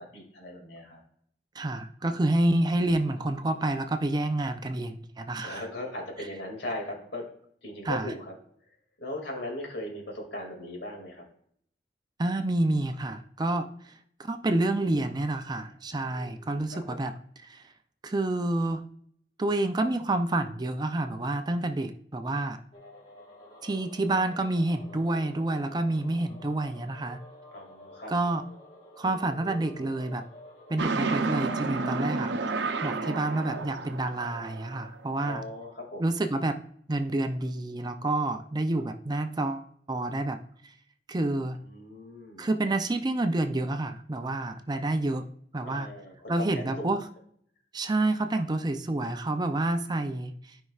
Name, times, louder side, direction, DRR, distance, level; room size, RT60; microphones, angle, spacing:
voice 1, 0.1-1.0 5.4-7.2 7.6-8.3 9.0-11.2 16.1-17.0 27.5-28.1 35.2-36.0 41.6-42.5 45.6-47.0, left 1 dB, 80° left, 0 dB, 2.4 m, -38 dB
voice 2, 1.5-5.6 7.8-8.1 12.2-13.9 14.2-17.1 17.4-17.7 18.0-18.9 19.4-22.6 23.6-27.2 28.1-28.4 29.0-30.2 30.7-32.3 32.8-35.4 36.0-36.6 36.9-40.7 41.1-41.6 42.4-45.3 45.5-45.9 46.3-47.1 47.7-50.6, right 2 dB, 25° right, 8 dB, 0.5 m, -28 dB
sound 1, 22.7-33.6, equal, 30° left, 1.8 m, -49 dB
sound 2, 30.8-35.0, right 3 dB, 80° right, 0.6 m, -31 dB
12.5 x 5.4 x 2.4 m, 0.63 s
head